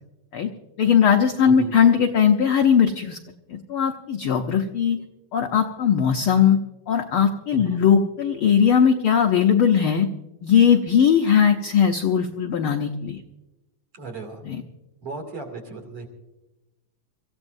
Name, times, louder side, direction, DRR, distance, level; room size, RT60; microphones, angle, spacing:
voice 1, 0.8-3.2 3.5-5.0 5.3-6.6 6.9-10.1 10.4-13.2 14.4-14.6, left 7 dB, 85° left, 4 dB, 1.1 m, -19 dB
voice 2, 7.5-7.8 13.9-14.4 15.0-16.1, right 3 dB, 50° right, 2 dB, 3.6 m, -36 dB
26.0 x 15.0 x 2.6 m, 1.0 s
omnidirectional pair, 3.5 m